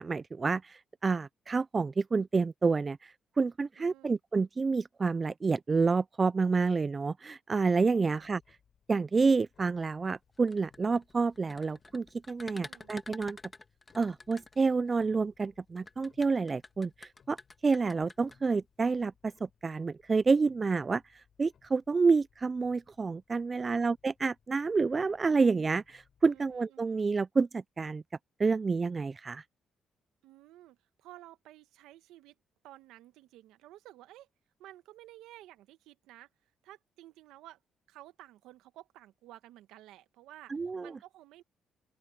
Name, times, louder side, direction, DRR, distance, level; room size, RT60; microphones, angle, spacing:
voice 1, 0.0-8.4 8.9-13.4 14.0-17.4 17.6-19.3 19.6-21.0 21.4-28.0 28.4-29.4 40.5-40.9, right 4 dB, 35° right, 0.3 m, -29 dB
voice 2, 3.8-4.2 8.1-8.2 12.5-13.0 23.5-23.9 26.3-27.1 30.2-32.4 32.6-34.3 34.6-37.6 37.9-41.4, right 15 dB, 85° right, 1.4 m, -53 dB
Clock, 8.1-26.6, left 7 dB, 55° left, 7.3 m, -69 dB
sound 1, 10.4-15.0 15.8-18.4, left 3 dB, 25° left, 1.9 m, -48 dB
open air
supercardioid pair, 60°, 0 cm